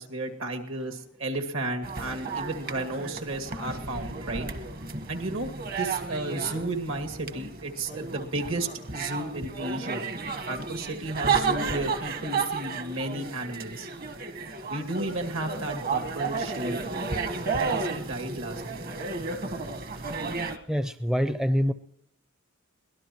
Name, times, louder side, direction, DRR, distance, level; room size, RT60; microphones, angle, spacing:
voice 1, 0.0-4.5 5.1-10.1 10.5-13.9 14.7-16.9 17.6-18.9, right 2 dB, 70° right, 5 dB, 2.3 m, -33 dB
sound 1, 1.8-20.6, right 4 dB, 45° right, 1.3 m, -32 dB
voice 2, 20.7-21.7, equal, 5° right, 10 dB, 0.5 m, -25 dB
23.5 x 18.0 x 3.0 m, 0.75 s
head